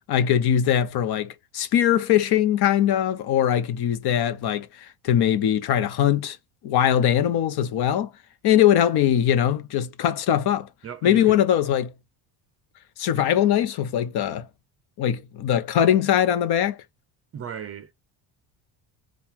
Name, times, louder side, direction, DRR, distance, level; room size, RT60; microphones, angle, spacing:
voice 1, 0.1-6.4 6.6-8.1 8.4-10.7 11.0-11.9 13.0-14.5 15.0-16.8, left 10 dB, 55° left, 0.8 m, -21 dB
voice 2, 10.8-11.4 13.1-13.2 17.3-17.9, right 8 dB, 30° right, 0.6 m, -36 dB
4.4 x 2.5 x 3.6 m
cardioid pair, 115°, 47 cm